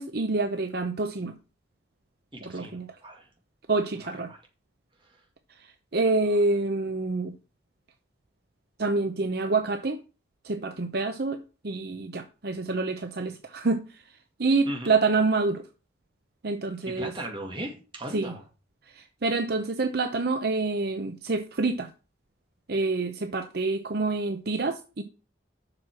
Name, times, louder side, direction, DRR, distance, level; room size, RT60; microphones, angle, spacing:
voice 1, 0.0-1.3 2.4-2.9 3.7-4.3 5.9-7.3 8.8-10.0 10.4-11.4 11.6-13.8 14.4-15.6 16.4-17.1 18.1-18.3 18.9-21.9 22.7-25.0, right 3 dB, 55° right, 0.7 m, -27 dB
voice 2, 2.4-3.3 4.0-4.4 14.7-14.9 17.0-18.4, right 1 dB, 25° right, 2.3 m, -37 dB
7.7 x 6.0 x 6.0 m
head